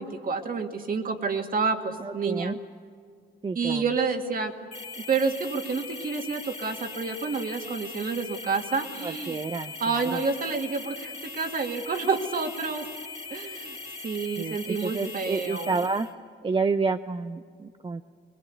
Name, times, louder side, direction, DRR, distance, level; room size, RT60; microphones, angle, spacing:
voice 1, 0.0-2.5 3.6-4.5 5.0-9.4 9.8-12.9 13.3-15.9, right 4 dB, 45° right, 5 dB, 2.2 m, -29 dB
voice 2, 2.0-2.6 3.4-3.8 9.0-10.2 14.4-16.1 16.4-18.0, right 4 dB, 25° right, 9 dB, 0.6 m, -29 dB
sound 1, 4.7-16.1, left 3 dB, 30° left, 2.6 m, -40 dB
22.0 x 20.5 x 8.4 m, 2.1 s
cardioid pair, 90°, 20 cm